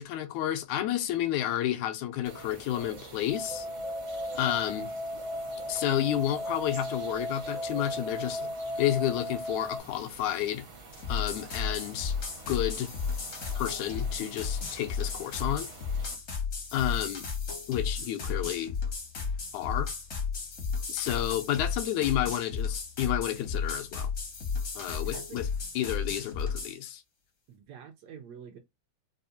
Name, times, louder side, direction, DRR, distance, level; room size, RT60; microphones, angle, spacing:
voice 1, 0.0-3.7 4.3-4.9 5.7-8.5 8.8-10.7 11.1-12.2 12.5-12.9 13.6-15.7 16.7-17.3 17.7-18.8 19.5-19.9 20.9-24.1 24.8-25.5 25.8-27.0, left 12 dB, 80° left, 2.0 m, -31 dB
sound 1, 2.2-16.1, right 4 dB, 55° right, 0.9 m, -47 dB
sound 2, 3.3-9.8, left 1 dB, 5° right, 0.4 m, -36 dB
sound 3, 10.9-26.8, left 5 dB, 55° left, 0.8 m, -34 dB
voice 2, 24.9-25.4 27.5-28.6, right 7 dB, 75° right, 1.8 m, -47 dB
5.3 x 2.1 x 2.7 m
omnidirectional pair, 3.4 m